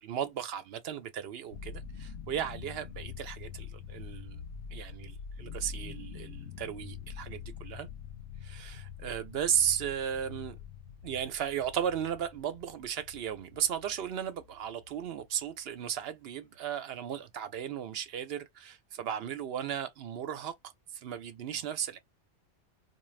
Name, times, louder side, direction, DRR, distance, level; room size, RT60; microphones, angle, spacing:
voice 1, 0.0-4.4 4.7-7.9 8.4-10.6 11.0-22.0, right 9 dB, 65° right, 0.7 m, -35 dB
sound 1, 1.5-15.5, left 7 dB, 85° left, 0.9 m, -45 dB
2.4 x 2.2 x 3.1 m
omnidirectional pair, 1.2 m